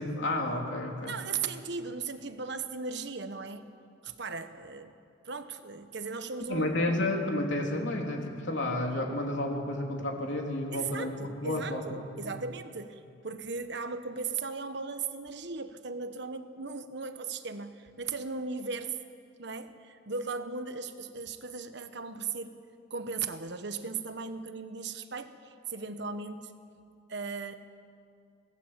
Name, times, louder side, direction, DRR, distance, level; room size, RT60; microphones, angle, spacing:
voice 1, 0.0-1.1 6.5-12.4, left 1 dB, 70° left, 1 dB, 3.3 m, -31 dB
voice 2, 1.1-3.7 4.0-4.9 5.2-6.7 10.7-19.0 19.4-22.6 22.9-26.5 27.1-27.6, right 4 dB, 65° right, 9 dB, 1.2 m, -37 dB
24.5 x 18.5 x 7.5 m, 2.4 s
head